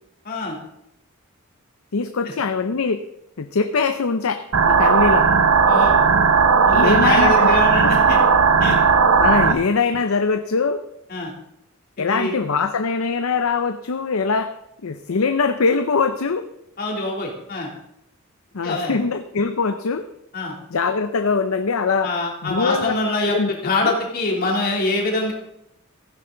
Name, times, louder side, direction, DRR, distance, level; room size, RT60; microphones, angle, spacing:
voice 1, 0.2-0.6 5.7-6.0 6.6-8.2 8.6-8.8 9.5-9.6 11.1-11.3 12.0-12.3 16.8-17.7 18.6-19.0 20.3-20.5 22.0-25.3, left 2 dB, 45° left, -2 dB, 3.1 m, -24 dB
voice 2, 1.9-3.0 3.4-5.3 6.7-7.6 7.8-7.9 9.2-10.8 12.0-14.5 14.8-16.4 18.5-20.0 20.7-22.1 22.4-22.9 23.3-23.5 23.8-23.9, left 4 dB, 85° left, 8 dB, 0.7 m, -22 dB
sound 1, 4.5-9.5, right 5 dB, 80° right, 0.9 m, -16 dB
15.0 x 10.0 x 3.9 m, 0.83 s
head